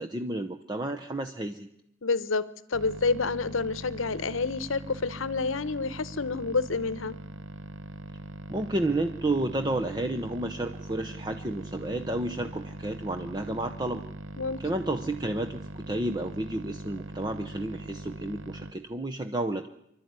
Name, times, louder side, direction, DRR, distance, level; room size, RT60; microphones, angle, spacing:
voice 1, 0.0-1.7 8.5-14.0 14.6-19.7, right 1 dB, 20° right, 5 dB, 0.8 m, -31 dB
voice 2, 2.0-7.2 14.4-14.6, left 4 dB, 75° left, 17 dB, 0.9 m, -29 dB
sound 1, 2.7-18.7, right 2 dB, 65° right, 0.9 m, -41 dB
25.5 x 12.0 x 9.6 m, 0.84 s
head